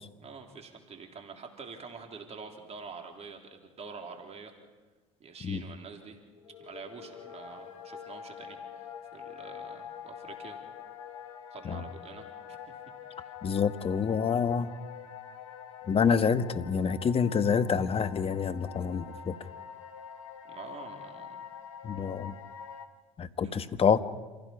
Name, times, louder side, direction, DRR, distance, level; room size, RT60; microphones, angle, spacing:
voice 1, 0.2-4.5 5.2-6.2 6.6-10.6 11.5-12.6 13.2-13.3 20.4-21.5 23.4-23.6, right 5 dB, 40° right, 3 dB, 3.5 m, -46 dB
sound 1, 6.4-22.9, left 8 dB, 85° left, 1.4 m, -45 dB
voice 2, 13.4-14.7 15.9-19.4 21.8-22.3 23.2-24.0, left 6 dB, 35° left, 11 dB, 1.3 m, -27 dB
28.0 x 16.0 x 5.9 m, 1.2 s
hypercardioid pair, 70°, 16 cm